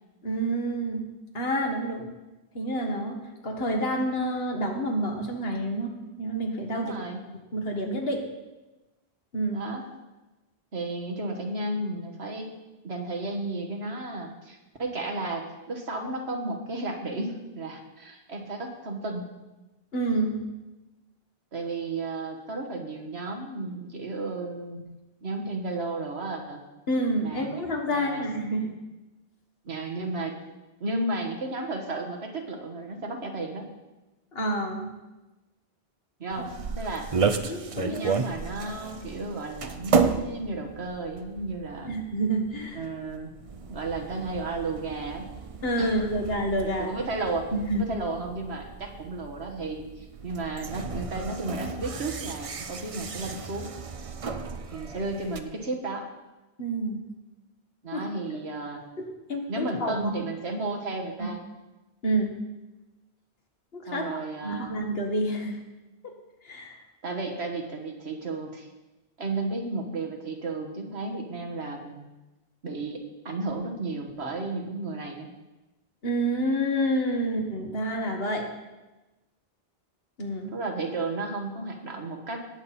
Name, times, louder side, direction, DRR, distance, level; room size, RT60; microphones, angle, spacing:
voice 1, 0.2-1.1 1.3-2.1 2.5-7.0 7.5-8.2 9.3-9.6 19.9-20.4 26.9-28.7 34.3-34.9 37.4-38.1 41.8-42.8 45.6-46.9 47.7-47.9 56.6-57.0 57.9-58.1 59.0-60.1 61.2-61.3 62.0-62.4 63.7-64.1 64.4-65.6 66.0-66.1 66.4-66.8 76.0-78.5 80.2-80.5, right 1 dB, 70° left, 2 dB, 1.9 m, -28 dB
voice 2, 6.7-7.3 9.5-9.8 10.7-12.5 12.8-19.3 21.5-24.8 25.2-26.6 27.2-28.2 29.7-30.4 30.8-33.7 36.2-36.5 36.8-37.1 37.7-41.9 42.8-43.3 43.7-45.3 45.8-45.9 46.8-47.5 47.7-53.7 54.7-56.1 57.8-58.8 59.5-61.4 63.9-64.7 67.0-68.7 69.2-72.1 72.6-75.3 80.5-82.4, right 2 dB, 85° right, 3 dB, 1.8 m, -33 dB
sound 1, 36.3-55.4, right 5 dB, 40° right, 0.6 m, -33 dB
18.5 x 7.3 x 4.2 m, 1.1 s
omnidirectional pair, 1.1 m